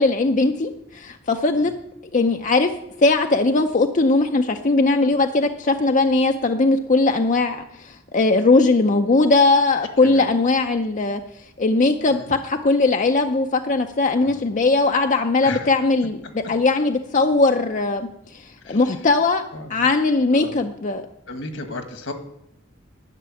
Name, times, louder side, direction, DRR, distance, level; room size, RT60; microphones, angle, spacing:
voice 1, 0.0-1.7 2.1-2.7 3.0-11.2 11.6-16.2 16.5-19.4 19.7-21.0, left 3 dB, 40° left, 5 dB, 0.6 m, -19 dB
voice 2, 10.0-10.4 12.1-12.4 14.2-14.4 15.4-15.7 18.6-19.0 19.5-19.8 20.3-20.6 21.3-22.1, left 2 dB, 70° left, 7 dB, 1.6 m, -35 dB
11.5 x 6.7 x 9.0 m, 0.79 s
head